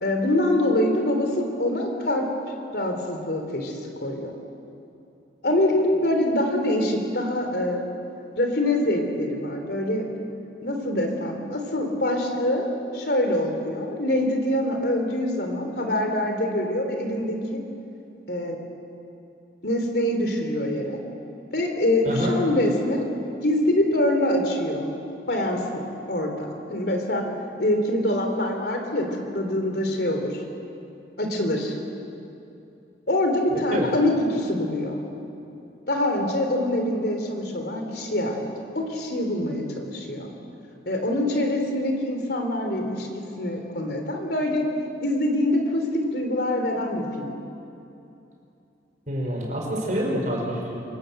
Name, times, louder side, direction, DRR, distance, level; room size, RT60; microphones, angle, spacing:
voice 1, 0.0-2.3 2.7-4.3 5.4-7.8 8.4-10.0 10.6-12.7 12.9-17.6 18.3-18.6 19.6-21.0 21.5-23.0 23.4-24.9 25.3-25.6 26.1-27.2 27.6-30.4 31.2-31.7 33.1-35.0 35.9-38.5 38.7-40.3 40.8-43.1 43.4-44.6 45.0-45.8 46.1-47.3, left 1 dB, 65° left, 4 dB, 3.4 m, -24 dB
voice 2, 33.5-33.9 49.1-50.8, equal, 45° right, -1 dB, 5.3 m, -27 dB
25.5 x 18.0 x 7.8 m, 2.8 s
head